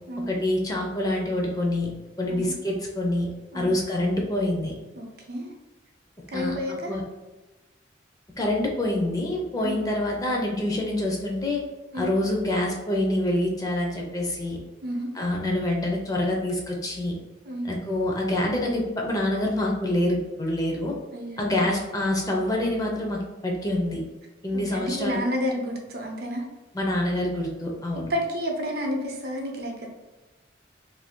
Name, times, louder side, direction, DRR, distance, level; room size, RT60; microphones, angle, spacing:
voice 1, 0.3-1.9 2.2-3.3 3.5-4.7 6.3-6.5 6.9-7.0 8.4-11.6 11.9-14.6 15.1-17.1 17.6-20.9 21.4-24.0 24.4-25.2 26.7-28.1, left 1 dB, 20° left, -1 dB, 0.5 m, -26 dB
voice 2, 5.0-5.5 6.3-7.0 9.6-9.8 11.9-12.1 14.8-15.1 17.4-17.7 21.1-21.6 24.5-26.4 27.9-29.9, equal, 55° right, 1 dB, 0.6 m, -30 dB
2.7 x 2.6 x 3.5 m, 1.1 s
head